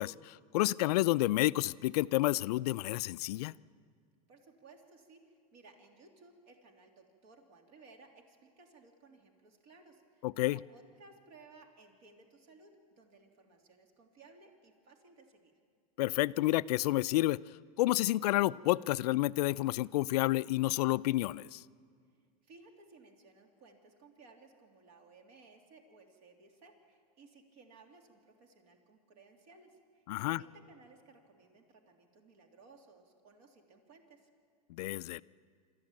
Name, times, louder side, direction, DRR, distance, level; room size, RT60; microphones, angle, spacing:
voice 1, 0.0-3.5 10.2-10.6 16.0-17.4 17.8-21.6 30.1-30.4 34.7-35.2, left 17 dB, 70° left, 17 dB, 0.5 m, -30 dB
voice 2, 4.3-15.5 22.4-34.3, right 3 dB, 55° right, 3 dB, 3.3 m, -59 dB
26.5 x 14.0 x 8.9 m, 2.1 s
supercardioid pair, 130°, 21 cm